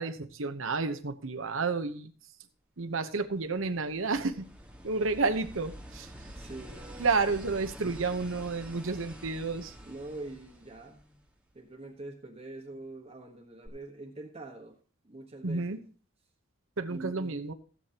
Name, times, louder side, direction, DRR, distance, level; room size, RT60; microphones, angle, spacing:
voice 1, 0.0-2.1 2.8-4.5 4.8-6.1 7.0-9.7 15.4-15.8 16.8-17.5, right 4 dB, 70° right, 7 dB, 0.9 m, -31 dB
sound 1, 3.1-11.5 13.7-13.8, equal, 5° right, 1.6 m, -48 dB
voice 2, 6.2-7.3 9.8-11.2 11.5-14.8 15.0-15.8 16.9-17.4, right 2 dB, 30° right, 1 dB, 1.3 m, -44 dB
16.5 x 8.5 x 2.9 m, 0.40 s
head